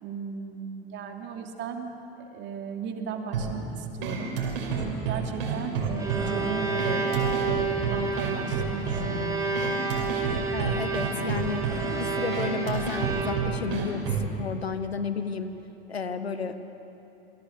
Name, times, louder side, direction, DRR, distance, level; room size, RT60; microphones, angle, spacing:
voice 1, 0.0-4.3 4.8-9.4, right 6 dB, 35° right, 3 dB, 2.9 m, -36 dB
sound 1, 3.3-14.3, right 4 dB, 60° right, 5.3 m, -30 dB
Bowed string instrument, 5.7-13.8, right 4 dB, 10° right, 4.5 m, -31 dB
voice 2, 10.5-15.5 15.9-16.6, left 5 dB, 80° left, 10 dB, 1.5 m, -32 dB
28.0 x 23.5 x 7.2 m, 2.9 s
figure-of-eight pair, 80°, 31 cm